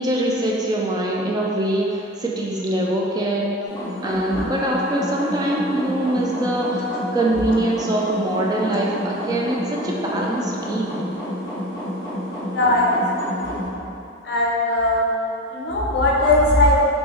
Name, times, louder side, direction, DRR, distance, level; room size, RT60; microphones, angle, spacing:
voice 1, 0.0-3.6 4.0-11.0, right 1 dB, 20° right, -3 dB, 0.3 m, -23 dB
sound 1, 3.7-13.7, equal, 20° left, 1.4 m, -29 dB
voice 2, 12.4-12.9 13.1-13.3 13.6-13.7 14.2-15.1 15.5-16.7, left 1 dB, 65° left, -3 dB, 0.6 m, -19 dB
3.5 x 2.9 x 3.3 m, 2.8 s
head